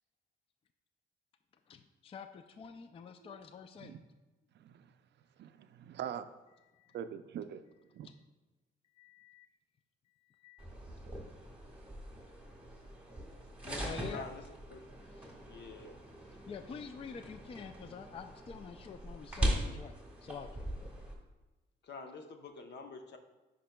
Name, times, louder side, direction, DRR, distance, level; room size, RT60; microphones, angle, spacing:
voice 1, 1.7-4.0 6.7-7.0 8.0-8.1 9.0-9.5 10.3-10.7 13.6-14.3 15.2-15.3 16.5-20.7, left 6 dB, 30° left, 8 dB, 0.4 m, -47 dB
voice 2, 5.4-6.3 6.9-7.6 7.9-8.1, right 9 dB, 60° right, 10 dB, 0.4 m, -42 dB
sound 1, 10.6-21.1, right 1 dB, 5° right, 1.5 m, -40 dB
voice 3, 14.1-14.4 14.7-14.8 15.5-16.0 21.8-23.2, left 4 dB, 60° left, 5 dB, 0.8 m, -47 dB
9.9 x 5.1 x 2.2 m, 1.1 s
cardioid pair, 90°, 20 cm